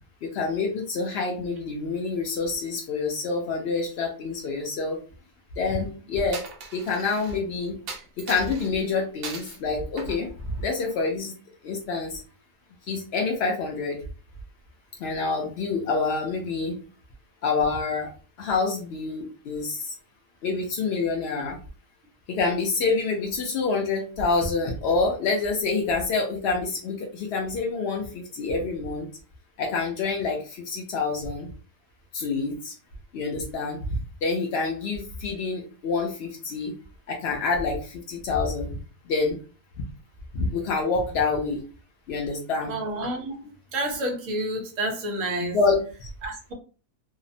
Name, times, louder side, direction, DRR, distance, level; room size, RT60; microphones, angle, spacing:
voice 1, 0.2-5.0 5.6-6.4 6.7-7.8 8.2-11.3 11.6-12.2 12.9-14.0 15.0-16.8 17.4-18.1 18.4-19.9 20.4-21.6 22.3-29.1 29.6-31.5 32.1-32.8 33.1-36.7 37.1-38.8 39.1-39.4 40.3-41.6 42.1-42.7 45.4-46.1, left 4 dB, 85° left, 0 dB, 0.5 m, -27 dB
Coin (dropping), 6.3-7.4 7.9-8.7 9.2-9.6 10.0-11.1, right 4 dB, 85° right, 0.5 m, -39 dB
voice 2, 42.7-43.4 43.7-45.6 46.2-46.5, right 1 dB, 65° right, 2 dB, 0.9 m, -29 dB
2.7 x 2.0 x 2.5 m, 0.37 s
omnidirectional pair, 1.7 m